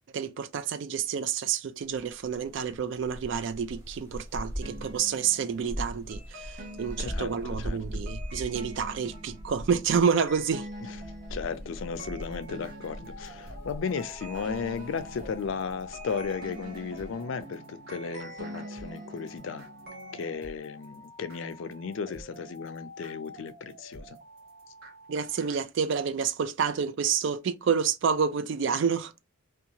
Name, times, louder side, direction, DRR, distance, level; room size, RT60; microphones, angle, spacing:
voice 1, 0.1-10.7 25.1-29.1, right 6 dB, 60° right, 0.3 m, -29 dB
sound 1, 1.8-17.2, equal, 15° right, 0.7 m, -41 dB
sound 2, 4.6-20.3, right 1 dB, 45° right, 1.0 m, -45 dB
voice 2, 7.0-7.3 7.6-7.8 11.3-19.6 20.1-24.2, left 5 dB, 65° left, 0.4 m, -35 dB
sound 3, 11.8-25.6, left 1 dB, 75° right, 1.0 m, -49 dB
2.7 x 2.3 x 2.7 m
head